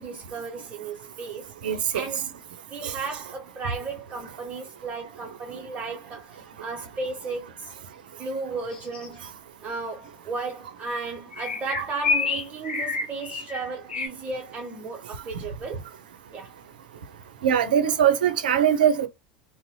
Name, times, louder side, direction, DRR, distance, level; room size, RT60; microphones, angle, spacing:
voice 1, 0.0-2.4 2.7-7.7 8.1-9.2 9.6-15.8 16.3-16.6, right 4 dB, 35° right, 0.6 m, -35 dB
voice 2, 1.6-2.1 2.8-2.9 11.8-11.9 17.4-19.1, right 9 dB, 80° right, 0.5 m, -21 dB
sound 1, 8.7-9.1 11.3-14.1, left 4 dB, 90° left, 0.7 m, -28 dB
2.6 x 2.0 x 2.6 m
hypercardioid pair, 85°, 5 cm